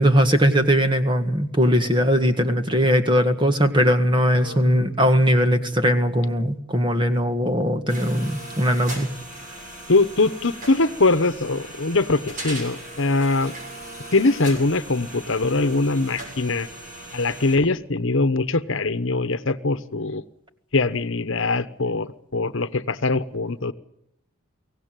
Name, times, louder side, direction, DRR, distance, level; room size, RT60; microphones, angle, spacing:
voice 1, 0.0-9.1, equal, 20° right, 7 dB, 1.7 m, -20 dB
voice 2, 4.4-4.9 9.9-13.5 14.1-16.7 17.1-20.2 20.7-23.7, left 3 dB, 65° left, 12 dB, 1.1 m, -22 dB
sound 1, 7.9-17.6, right 1 dB, 40° right, 6.7 m, -38 dB
23.5 x 17.5 x 9.1 m, 0.80 s
head